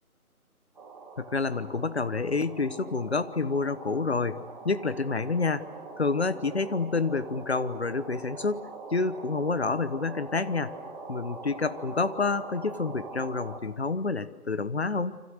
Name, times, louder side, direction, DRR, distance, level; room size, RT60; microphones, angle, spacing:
sound 1, 0.7-13.6, right 3 dB, 30° right, 3.1 m, -43 dB
voice 1, 1.2-5.7 6.0-10.7 11.1-15.2, left 4 dB, 45° left, 13 dB, 1.2 m, -28 dB
29.0 x 25.5 x 6.6 m, 1.1 s
figure-of-eight pair, 175°, 44 cm